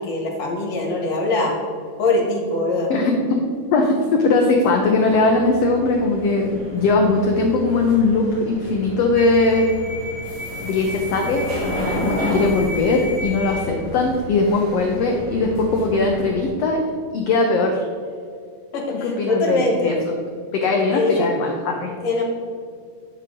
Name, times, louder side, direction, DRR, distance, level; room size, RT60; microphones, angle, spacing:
voice 1, 0.0-1.6 2.0-2.9 18.7-20.0 20.9-21.3 22.0-22.2, left 2 dB, 60° left, -1 dB, 2.4 m, -22 dB
voice 2, 3.7-9.7 10.6-16.8 17.1-17.8 19.0-20.0 20.5-21.9, left 3 dB, 85° left, 2 dB, 1.4 m, -20 dB
sound 1, 4.4-16.5, left 1 dB, 75° right, 4.0 m, -31 dB
10.0 x 8.0 x 3.7 m, 2.2 s
omnidirectional pair, 3.9 m